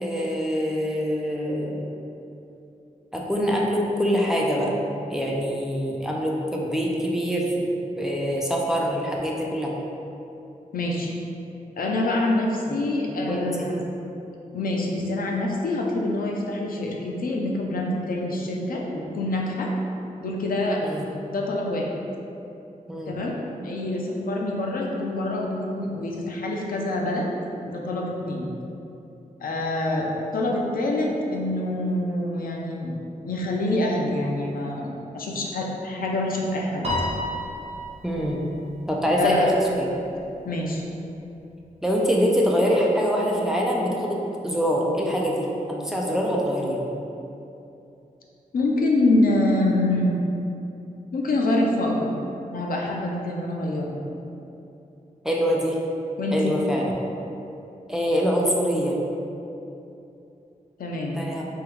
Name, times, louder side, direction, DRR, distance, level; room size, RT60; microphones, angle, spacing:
voice 1, 0.0-1.9 3.1-4.7 5.1-7.7 8.0-9.7 12.9-13.0 13.3-13.7 20.8-21.1 22.9-23.2 38.0-38.4 38.9-39.9 41.8-46.9 55.2-55.8 56.3-56.9 57.9-59.0 61.1-61.5, equal, 5° right, -3 dB, 0.4 m, -24 dB
voice 2, 10.7-11.1 11.8-14.1 14.5-19.7 20.2-20.8 21.3-22.0 23.1-23.4 23.6-27.3 27.7-28.5 29.4-32.9 33.2-36.9 39.2-39.5 40.5-40.8 48.5-50.1 51.1-52.1 52.5-54.0 56.2-56.5 60.8-61.2, left 2 dB, 90° left, -1 dB, 0.5 m, -26 dB
Piano, 36.8-39.3, left 1 dB, 45° right, 0.7 m, -31 dB
3.6 x 3.4 x 3.2 m, 2.8 s
wide cardioid pair, 165°, 14 cm